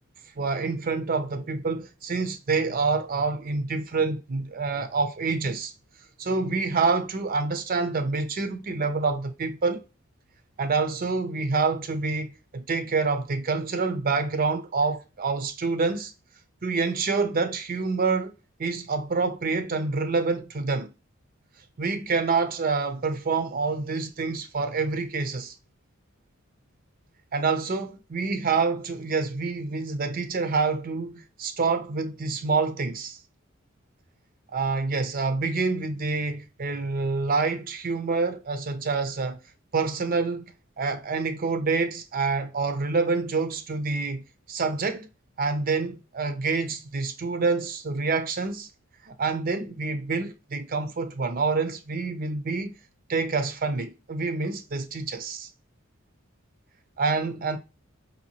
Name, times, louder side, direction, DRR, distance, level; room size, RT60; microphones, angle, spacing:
voice 1, 0.4-5.7 6.2-9.8 10.6-16.1 16.6-18.3 18.6-20.9 21.8-25.5 27.3-33.2 34.5-39.4 39.7-40.4 40.8-44.2 44.5-45.1 45.4-48.7 49.0-52.7 53.1-55.5 57.0-57.6, right 4 dB, 45° right, 0.5 m, -27 dB
5.2 x 2.7 x 2.9 m
head